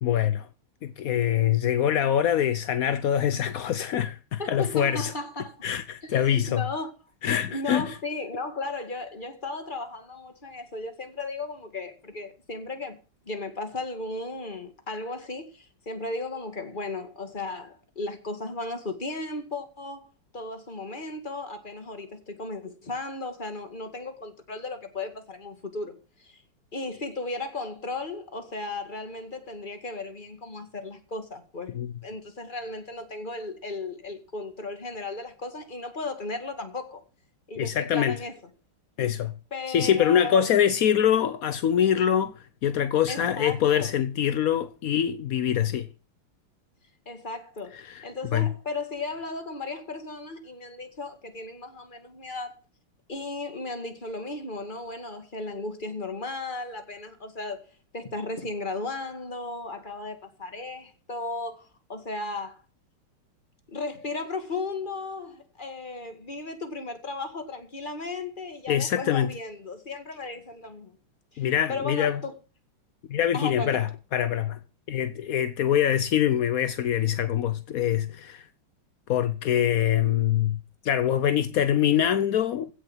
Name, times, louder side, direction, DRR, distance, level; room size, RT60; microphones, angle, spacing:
voice 1, 0.0-0.5 0.8-5.1 5.6-6.7 7.2-8.0 31.8-31.9 37.6-38.2 39.0-39.3 39.7-42.3 42.6-45.9 47.7-48.0 48.3-48.5 68.7-69.3 71.4-72.2 73.1-74.6 74.9-78.5 79.1-82.7, left 10 dB, 70° left, 0.8 m, -24 dB
voice 2, 4.4-5.6 6.0-6.9 7.5-13.0 13.3-20.1 20.3-26.4 26.7-37.0 37.5-38.4 39.5-40.5 43.1-43.9 47.1-52.6 53.1-57.6 57.9-62.6 63.7-71.0 71.3-72.3 73.3-73.9, left 3 dB, 25° left, 2.0 m, -35 dB
16.0 x 6.7 x 7.3 m
omnidirectional pair, 2.4 m